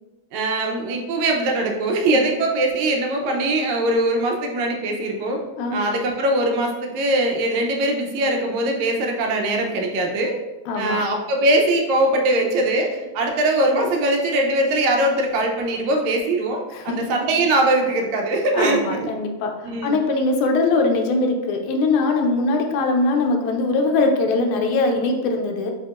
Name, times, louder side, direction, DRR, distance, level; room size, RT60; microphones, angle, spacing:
voice 1, 0.3-5.4 5.7-10.3 10.8-19.1 19.6-19.9, right 1 dB, 80° right, 1 dB, 1.9 m, -21 dB
voice 2, 10.7-11.0 16.7-17.2 18.5-25.7, left 3 dB, 80° left, 3 dB, 2.0 m, -21 dB
7.8 x 2.8 x 2.4 m, 1.1 s
omnidirectional pair, 3.4 m